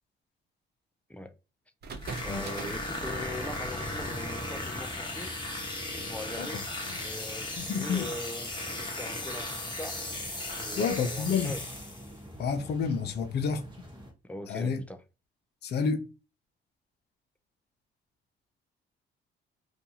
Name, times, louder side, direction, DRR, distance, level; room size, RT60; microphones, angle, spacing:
sound 1, 1.8-5.7, right 3 dB, 55° right, 0.6 m, -43 dB
sound 2, 2.0-12.2, left 2 dB, 25° left, 1.0 m, -37 dB
voice 1, 2.2-5.3 5.9-6.6 7.0-10.1 10.6-11.7 14.2-15.0, left 1 dB, 5° left, 0.4 m, -41 dB
sound 3, 3.0-14.1, equal, 25° right, 1.1 m, -46 dB
voice 2, 7.6-8.1 10.7-11.5 12.4-13.6 14.5-14.8 15.6-16.1, left 5 dB, 55° left, 0.5 m, -29 dB
2.6 x 2.3 x 2.7 m
cardioid pair, 90°, 20 cm